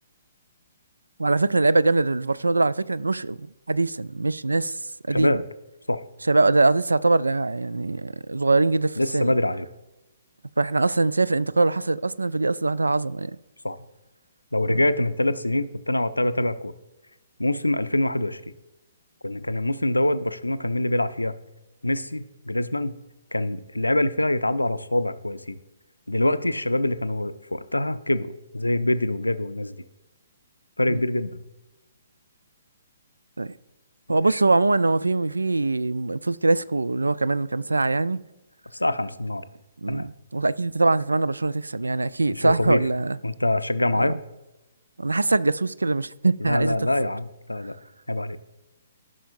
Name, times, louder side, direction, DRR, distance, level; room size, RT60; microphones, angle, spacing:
voice 1, 1.2-4.8 5.1-5.4 6.3-9.3 10.6-13.4 14.7-14.8 30.9-31.0 33.4-33.5 34.1-38.2 39.8-43.2 44.0-44.1 45.0-46.8, right 3 dB, 75° right, 0.3 m, -23 dB
voice 2, 5.1-5.4 5.9-6.0 9.0-9.7 13.6-13.8 14.5-16.7 17.4-18.4 19.2-21.3 21.8-23.0 23.3-25.6 26.1-29.8 30.8-31.4 34.3-34.4 38.7-39.4 39.9-40.1 42.3-42.9 43.2-44.2 46.4-47.7 48.1-48.4, left 1 dB, 80° left, 0.5 m, -25 dB
14.5 x 6.1 x 2.6 m
figure-of-eight pair, 125°, 0 cm